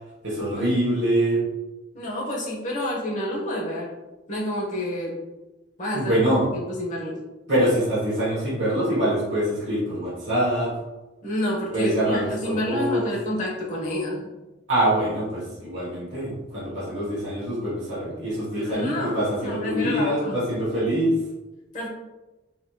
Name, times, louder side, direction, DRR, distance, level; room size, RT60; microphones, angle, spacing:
voice 1, 0.2-1.4 5.9-6.4 7.5-10.7 11.7-13.1 14.7-21.2, right 1 dB, 80° right, -7 dB, 1.2 m, -24 dB
voice 2, 1.9-3.9 4.3-5.2 5.8-6.2 6.5-7.2 11.2-14.3 18.5-20.4 21.7-21.9, left 1 dB, 40° left, -4 dB, 1.0 m, -29 dB
4.2 x 3.0 x 2.3 m, 1.1 s
head